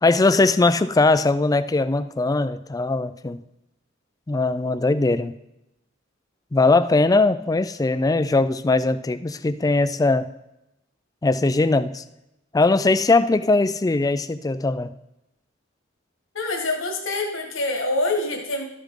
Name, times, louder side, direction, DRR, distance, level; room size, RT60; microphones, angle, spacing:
voice 1, 0.0-3.4 4.3-5.3 6.5-10.3 11.2-12.0 12.5-14.9, left 3 dB, 20° left, 13 dB, 0.4 m, -20 dB
voice 2, 16.3-18.6, left 2 dB, 80° left, 1 dB, 1.8 m, -25 dB
12.5 x 7.0 x 3.8 m, 0.88 s
head